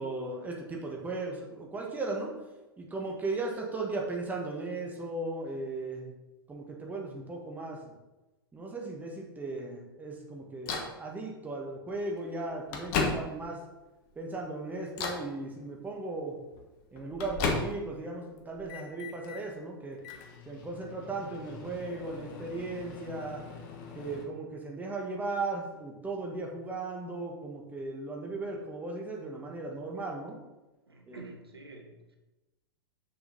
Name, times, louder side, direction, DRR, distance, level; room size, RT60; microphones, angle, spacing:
voice 1, 0.0-2.3 2.8-6.1 6.5-7.9 8.5-13.6 14.1-16.4 16.9-20.0 20.4-23.4 23.9-30.4 31.1-31.3, right 3 dB, 15° right, 0 dB, 1.6 m, -37 dB
Microwave oven, 10.7-11.0 11.9-12.0 12.5-13.6 14.1-14.5 14.9-15.3 16.5-18.0 18.4-19.4 20.0-24.2, left 4 dB, 50° left, 1.4 m, -36 dB
voice 2, 30.9-32.2, right 2 dB, 85° right, 3 dB, 1.2 m, -49 dB
6.9 x 6.7 x 4.1 m, 1.0 s
figure-of-eight pair, 100°, 13 cm